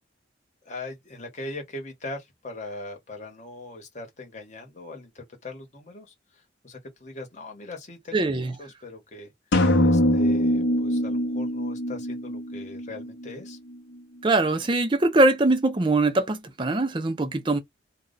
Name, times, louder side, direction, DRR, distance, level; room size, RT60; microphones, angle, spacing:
voice 1, 0.6-9.3 9.8-13.6, left 2 dB, 35° left, 1.0 m, -40 dB
voice 2, 8.1-8.5 14.2-17.6, right 2 dB, 25° right, 0.5 m, -22 dB
sound 1, 9.5-13.3, equal, 65° left, 0.7 m, -23 dB
2.3 x 2.1 x 3.7 m
head